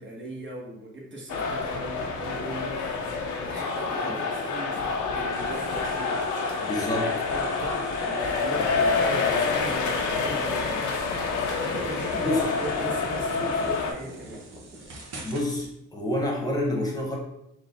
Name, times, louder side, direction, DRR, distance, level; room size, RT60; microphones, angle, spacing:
voice 1, 0.0-2.9 3.4-6.2 7.3-10.8 11.6-14.4, right 2 dB, 40° right, -2 dB, 1.3 m, -38 dB
sound 1, 1.3-13.9, left 4 dB, 80° left, 0.7 m, -27 dB
sound 2, 5.3-15.7, right 2 dB, 55° right, 1.2 m, -46 dB
voice 2, 6.6-7.1 12.2-12.3 15.2-17.2, left 1 dB, 10° left, -1 dB, 1.1 m, -28 dB
4.0 x 2.3 x 4.2 m, 0.82 s
cardioid pair, 90°, 30 cm